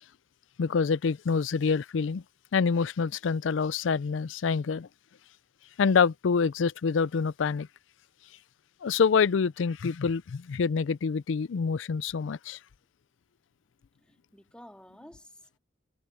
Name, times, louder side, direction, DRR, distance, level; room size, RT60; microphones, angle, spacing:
voice 1, 0.6-2.2 2.5-4.9 5.8-7.7 8.8-12.6, left 5 dB, 80° left, 0.4 m, -26 dB
voice 2, 14.0-15.6, equal, 5° left, 2.3 m, -52 dB
head